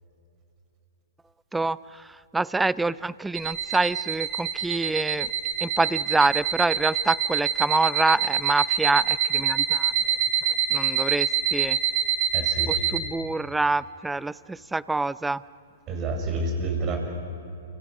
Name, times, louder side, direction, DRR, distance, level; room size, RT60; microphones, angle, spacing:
voice 1, 1.5-5.3 5.6-9.9 10.7-11.8 12.7-15.4, right 2 dB, 5° right, 20 dB, 0.5 m, -26 dB
sound 1, 3.3-13.0, right 9 dB, 55° right, 3.4 m, -25 dB
voice 2, 12.3-12.7 15.9-17.0, right 2 dB, 35° right, 3 dB, 6.6 m, -28 dB
30.0 x 25.5 x 6.3 m, 2.8 s
hypercardioid pair, 115°, 0 cm